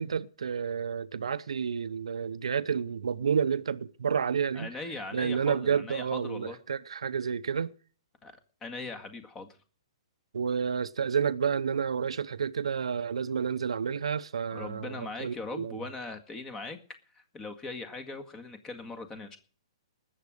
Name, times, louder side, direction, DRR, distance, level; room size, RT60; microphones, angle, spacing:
voice 1, 0.0-4.7 5.1-7.7 10.3-15.8, right 7 dB, 85° right, 0.8 m, -30 dB
voice 2, 4.5-6.6 8.2-8.3 8.6-9.5 14.5-16.8 17.1-19.4, left 3 dB, 15° left, 1.8 m, -40 dB
20.0 x 7.6 x 5.1 m
hypercardioid pair, 145°, 3 cm